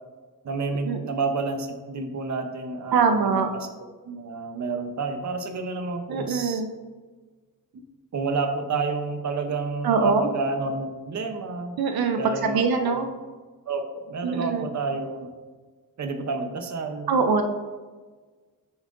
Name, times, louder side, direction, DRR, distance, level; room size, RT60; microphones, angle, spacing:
voice 1, 0.4-3.7 4.1-6.6 7.7-7.8 8.1-11.8 12.1-13.0 13.7-15.3 16.0-17.1, right 3 dB, 50° right, 7 dB, 0.8 m, -30 dB
voice 2, 2.9-3.5 6.1-6.7 9.8-10.3 11.8-13.1 14.2-14.7 17.1-17.5, right 5 dB, 85° right, 7 dB, 0.6 m, -23 dB
9.0 x 7.1 x 2.6 m, 1.4 s
wide cardioid pair, 140°, 36 cm